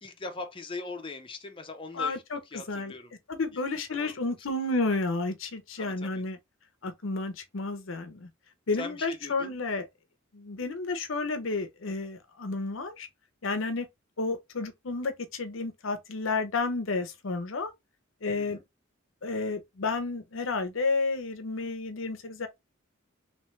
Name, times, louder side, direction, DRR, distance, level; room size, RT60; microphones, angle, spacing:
voice 1, 0.0-2.2 2.5-3.1 3.8-4.1 5.8-6.2 8.8-9.6 18.3-18.6, left 3 dB, 25° left, 0.7 m, -41 dB
voice 2, 1.9-2.9 3.3-6.4 6.8-8.3 8.7-9.9 10.3-13.1 13.4-13.9 14.2-17.7 18.2-18.6 19.2-22.5, left 3 dB, 70° left, 0.7 m, -31 dB
3.2 x 3.1 x 3.1 m
head